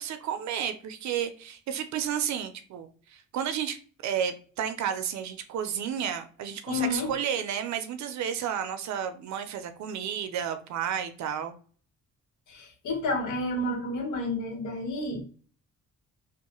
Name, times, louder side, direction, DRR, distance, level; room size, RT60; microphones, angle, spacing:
voice 1, 0.0-3.8 4.0-11.5, right 8 dB, 70° right, 0.5 m, -32 dB
voice 2, 6.7-7.1 12.5-15.2, left 2 dB, 75° left, 1.1 m, -30 dB
3.0 x 2.1 x 2.9 m
cardioid pair, 90°, 30 cm